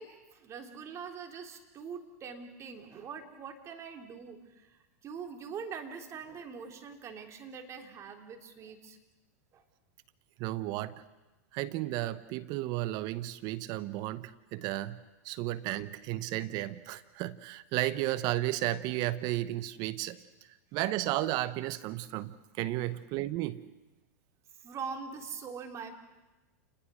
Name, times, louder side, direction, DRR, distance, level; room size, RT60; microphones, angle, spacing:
voice 1, 0.0-9.0 9.5-9.6 22.9-23.0 24.6-25.9, right 6 dB, 30° right, 4 dB, 3.4 m, -43 dB
voice 2, 10.4-10.9 11.5-15.0 15.2-20.2 20.7-23.6, right 16 dB, 45° right, 15 dB, 0.9 m, -33 dB
29.0 x 20.5 x 6.3 m, 1.1 s
hypercardioid pair, 105°, 9 cm